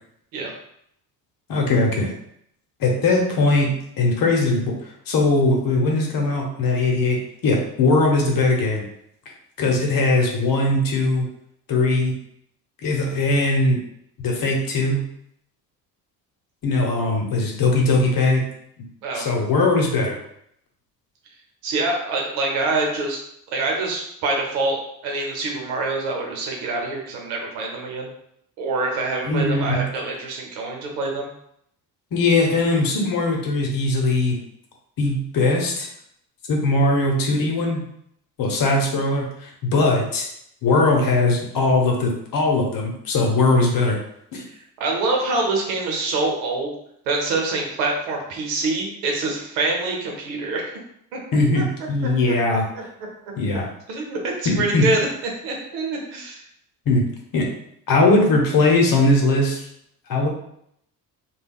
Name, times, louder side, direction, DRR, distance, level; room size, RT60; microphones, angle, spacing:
voice 1, 1.5-2.1 2.8-4.6 5.1-7.2 7.4-8.8 9.6-11.3 11.7-12.1 12.8-13.8 14.2-15.0 16.6-18.4 19.1-20.2 29.3-29.8 32.1-34.4 35.0-35.9 36.5-37.8 38.4-40.3 40.6-44.0 44.3-44.4 51.3-52.7 53.4-53.6 54.4-54.8 56.9-57.0 57.3-57.5 57.9-59.6 60.1-60.3, left 2 dB, 45° left, 0 dB, 1.0 m, -20 dB
voice 2, 21.6-23.2 23.5-28.1 28.6-31.3 44.8-46.7 47.1-50.6 51.1-51.2 51.5-51.6 52.3-52.8 53.9-55.1 55.4-56.4, right 3 dB, 65° right, 0 dB, 0.9 m, -25 dB
3.4 x 2.4 x 2.3 m, 0.72 s
hypercardioid pair, 55°, 50 cm